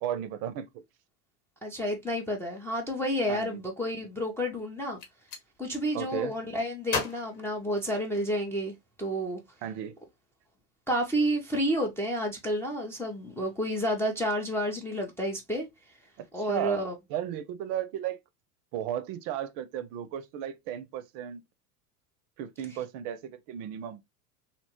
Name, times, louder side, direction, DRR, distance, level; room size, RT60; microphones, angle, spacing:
voice 1, 0.0-0.7 3.3-3.6 5.9-6.3 9.6-9.9 16.4-16.8 17.1-18.2 18.7-21.4 22.4-24.0, right 10 dB, 50° right, 0.5 m, -34 dB
voice 2, 1.6-5.0 5.6-8.7 9.0-9.4 10.9-15.7 16.3-16.9, equal, 5° left, 0.4 m, -30 dB
Gunshot gunfire, 5.0-5.5 6.9-8.3, left 5 dB, 60° left, 1.0 m, -36 dB
2.8 x 2.1 x 2.9 m
hypercardioid pair, 95°, 46 cm